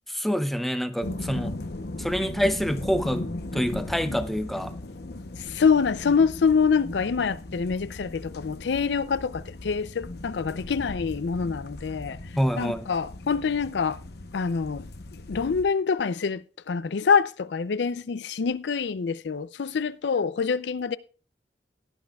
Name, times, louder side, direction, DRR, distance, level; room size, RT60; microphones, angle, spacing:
voice 1, 0.1-1.6 2.0-4.7 12.4-12.9, equal, ahead, 0.6 m, -27 dB
sound 1, 1.0-15.6, left 2 dB, 65° left, 0.9 m, -38 dB
voice 2, 5.4-12.2 12.6-14.0 14.3-14.9 15.3-21.0, left 5 dB, 85° left, 0.5 m, -25 dB
17.0 x 11.0 x 2.3 m
head